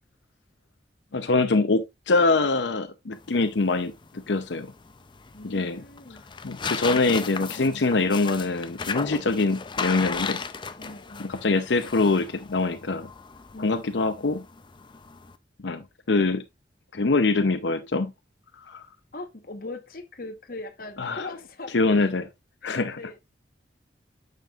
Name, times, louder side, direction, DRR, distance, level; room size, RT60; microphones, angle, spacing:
voice 1, 1.1-4.7 5.4-5.8 6.4-10.4 11.2-13.1 13.6-14.4 15.6-16.4 16.9-18.1 18.6-18.8 21.0-21.3 21.7-22.3 22.6-23.0, left 3 dB, 80° left, 0.7 m, -24 dB
sound 1, 3.1-15.4, left 5 dB, 25° left, 0.5 m, -36 dB
voice 2, 5.3-6.2 10.8-11.4 13.5-13.8 14.1-14.3 19.1-21.8 22.6-23.2, left 2 dB, 50° left, 1.2 m, -40 dB
9.2 x 6.7 x 2.4 m
head